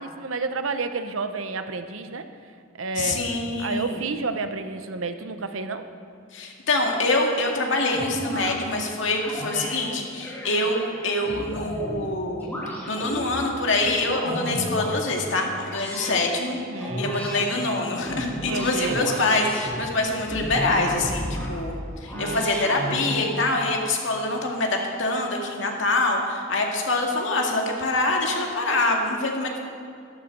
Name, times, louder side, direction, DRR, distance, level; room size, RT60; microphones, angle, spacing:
voice 1, 0.0-2.2 2.8-5.8 10.5-10.6 16.7-17.1 18.4-19.1 22.1-22.5, right 3 dB, 80° right, 9 dB, 0.9 m, -30 dB
voice 2, 3.0-4.0 6.3-12.5 12.9-21.7 22.0-29.6, left 2 dB, 65° left, 1 dB, 2.1 m, -25 dB
sound 1, 7.8-8.5 9.2-9.7 10.2-12.0 12.4-13.3 13.8-15.0 15.6-16.2 16.8-17.4 17.9-19.8 20.3-21.5 22.0-23.3, equal, 10° left, 3.1 m, -32 dB
12.5 x 12.5 x 6.7 m, 2.4 s
head